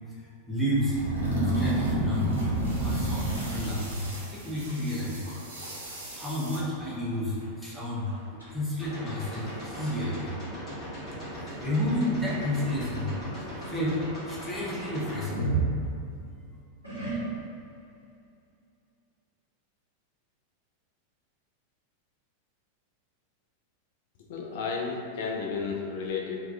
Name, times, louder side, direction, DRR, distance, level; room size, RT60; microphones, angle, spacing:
voice 1, 0.5-1.0 1.5-2.4 2.8-5.3 5.8-8.1 8.5-10.3 11.6-13.1 13.7-15.5, left 1 dB, ahead, -8 dB, 0.6 m, -31 dB
sound 1, 0.6-7.0, right 2 dB, 70° right, 0.5 m, -44 dB
sound 2, 0.8-4.1 4.7-4.9 5.3-5.7 5.9-6.0 6.8-6.9 7.4-7.5 8.1-8.5 9.3-9.4 12.3-13.3 15.3-16.3 16.8-17.6, right 2 dB, 90° left, 0.8 m, -29 dB
sound 3, 8.8-15.3, equal, 30° left, 0.9 m, -39 dB
voice 2, 24.3-26.4, left 5 dB, 55° left, -1 dB, 0.4 m, -32 dB
2.2 x 2.2 x 2.6 m, 2.3 s
figure-of-eight pair, 90°, 0 cm